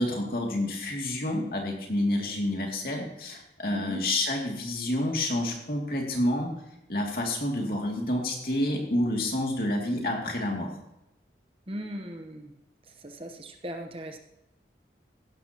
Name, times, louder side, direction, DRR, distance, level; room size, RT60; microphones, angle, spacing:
voice 1, 0.0-6.5 6.9-10.7, left 1 dB, 55° left, 0 dB, 2.6 m, -29 dB
voice 2, 3.7-4.0 11.7-12.5 13.0-14.2, equal, 30° right, 5 dB, 1.0 m, -38 dB
15.5 x 12.0 x 3.0 m, 0.87 s
head